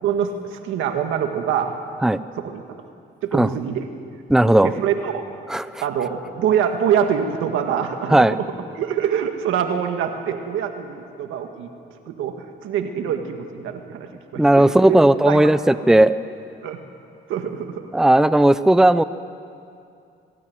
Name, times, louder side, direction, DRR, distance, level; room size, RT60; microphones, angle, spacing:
voice 1, 0.0-1.7 2.4-2.6 3.2-3.9 4.6-5.2 5.8-8.5 8.7-11.7 12.1-15.0 15.3-15.5 16.6-16.8 17.3-17.9, right 8 dB, 90° right, 5 dB, 1.8 m, -24 dB
voice 2, 4.3-4.7 5.5-5.8 8.1-8.4 14.3-16.1 17.9-19.0, right 1 dB, 5° right, 14 dB, 0.7 m, -15 dB
23.5 x 20.0 x 9.5 m, 2.5 s
cardioid pair, 90°, 20 cm